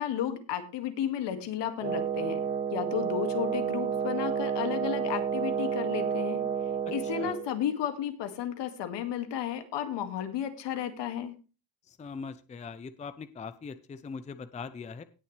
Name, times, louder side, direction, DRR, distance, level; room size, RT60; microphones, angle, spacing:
voice 1, 0.0-2.4 2.7-6.4 6.9-11.3, left 9 dB, 65° left, 8 dB, 2.2 m, -33 dB
Wind instrument woodwind instrument, 1.8-7.5, right 7 dB, 25° right, 2.3 m, -30 dB
voice 2, 11.9-15.0, left 5 dB, 15° left, 13 dB, 0.6 m, -41 dB
18.0 x 6.9 x 3.3 m, 0.32 s
cardioid pair, 125°, 46 cm